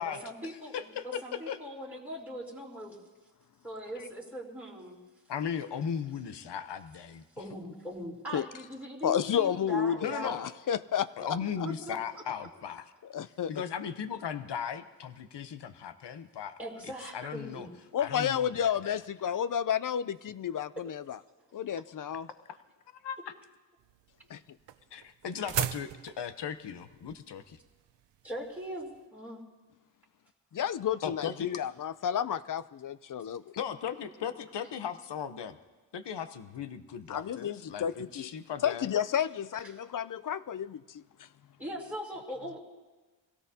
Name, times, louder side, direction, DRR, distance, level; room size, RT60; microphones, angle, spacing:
voice 1, 0.0-0.7 1.0-2.9 3.6-5.0 7.4-10.3 11.6-12.0 12.4-12.5 16.6-17.8 28.2-29.4 41.6-42.6, equal, 5° right, -5 dB, 3.3 m, -40 dB
voice 2, 0.7-1.6 5.3-7.2 10.0-10.4 11.2-12.9 13.5-16.5 17.1-17.7 18.0-19.0 23.0-23.3 24.9-27.6 31.0-31.5 33.6-35.6 35.9-38.9, left 8 dB, 65° left, 10 dB, 0.9 m, -37 dB
voice 3, 9.0-11.1 13.1-13.5 17.9-21.2 21.5-22.3 24.3-24.4 30.5-33.4 37.1-38.3 38.6-41.3, left 9 dB, 45° left, 15 dB, 0.5 m, -31 dB
sound 1, 23.8-29.0, right 11 dB, 70° right, 0.6 m, -38 dB
25.0 x 17.0 x 2.8 m, 1.3 s
wide cardioid pair, 120°, 44 cm